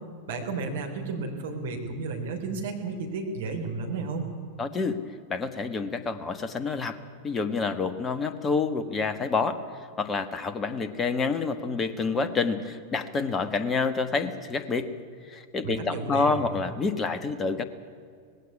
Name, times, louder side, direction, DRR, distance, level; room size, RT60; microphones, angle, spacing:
voice 1, 0.3-4.3 15.6-16.4, right 4 dB, 60° right, 3 dB, 3.3 m, -32 dB
voice 2, 4.6-5.0 5.3-7.0 7.2-9.6 10.0-14.9 15.3-17.6, left 4 dB, 20° left, 11 dB, 1.5 m, -28 dB
19.0 x 16.5 x 9.6 m, 2.2 s
figure-of-eight pair, 90°, 0 cm